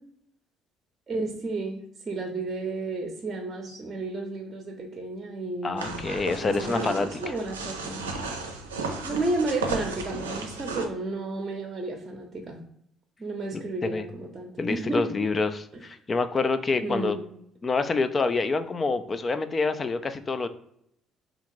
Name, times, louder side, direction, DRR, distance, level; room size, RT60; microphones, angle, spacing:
voice 1, 1.1-1.8 2.1-6.1 6.4-8.0 9.0-12.6 13.2-15.0 16.8-17.2, right 2 dB, 35° right, 2 dB, 0.7 m, -32 dB
voice 2, 5.6-7.2 13.5-14.0 14.6-17.2 17.6-20.5, left 3 dB, 35° left, 11 dB, 0.4 m, -27 dB
sound 1, 5.8-10.9, right 3 dB, 90° right, 0.5 m, -34 dB
3.4 x 2.5 x 3.0 m, 0.74 s
hypercardioid pair, 50°, 0 cm